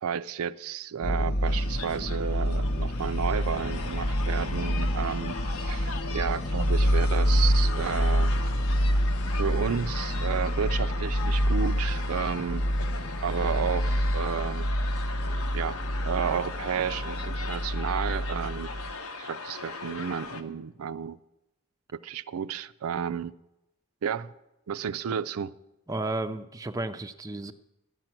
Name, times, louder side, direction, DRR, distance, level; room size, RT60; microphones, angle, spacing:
voice 1, 0.0-5.4 5.6-8.3 9.4-12.6 13.2-14.7 15.5-15.8 16.0-18.7 19.2-21.2 21.9-23.3 24.0-24.3 24.7-25.5, right 7 dB, 85° right, 0.4 m, -32 dB
sound 1, 1.0-18.9, equal, 45° left, 0.6 m, -27 dB
sound 2, 1.4-20.4, left 4 dB, 80° left, 0.9 m, -39 dB
voice 2, 25.9-27.5, right 2 dB, 15° right, 0.4 m, -32 dB
13.0 x 9.0 x 6.0 m
head